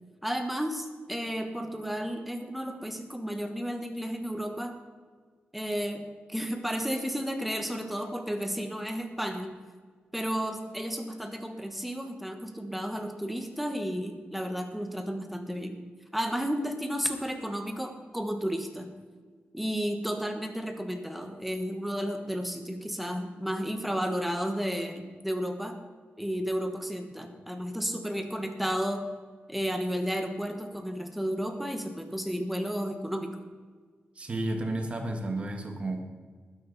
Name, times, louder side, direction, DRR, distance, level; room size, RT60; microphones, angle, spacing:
voice 1, 0.2-4.8 5.5-9.5 10.1-15.8 16.1-18.9 19.5-25.8 26.2-29.1 29.5-33.4, equal, ahead, 5 dB, 1.3 m, -32 dB
voice 2, 34.1-36.0, right 2 dB, 30° right, 4 dB, 1.7 m, -32 dB
20.0 x 9.7 x 4.2 m, 1.5 s
wide cardioid pair, 170°, 4 cm